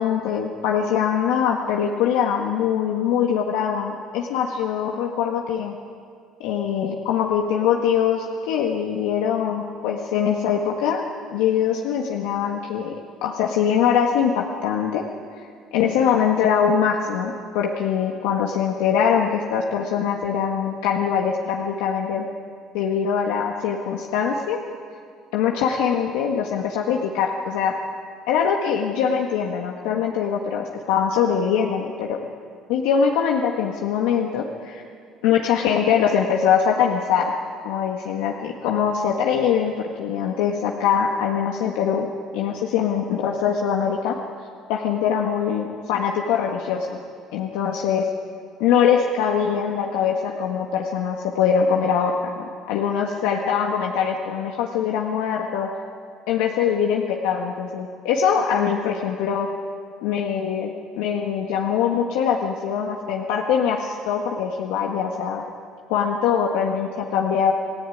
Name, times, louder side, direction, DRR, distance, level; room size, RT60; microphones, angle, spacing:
voice 1, 0.0-5.7 6.4-12.9 13.2-15.0 15.7-22.3 22.7-24.6 25.3-27.7 28.3-32.2 32.7-34.8 35.2-37.3 37.6-42.1 42.3-44.1 44.7-47.0 47.3-48.1 48.6-55.7 56.3-59.5 60.0-65.4 65.9-67.5, left 7 dB, 85° left, 0 dB, 1.7 m, -22 dB
27.5 x 16.5 x 9.4 m, 2.2 s
supercardioid pair, 95°, 0 cm